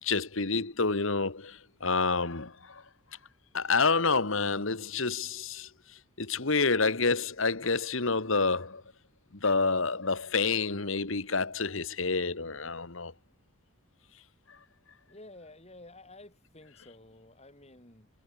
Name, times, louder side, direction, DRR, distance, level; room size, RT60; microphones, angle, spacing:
voice 1, 0.0-2.8 3.5-8.8 9.4-13.1 14.5-14.6, left 4 dB, 65° left, 1.8 m, -28 dB
voice 2, 15.1-18.1, left 2 dB, 30° left, 7.7 m, -52 dB
head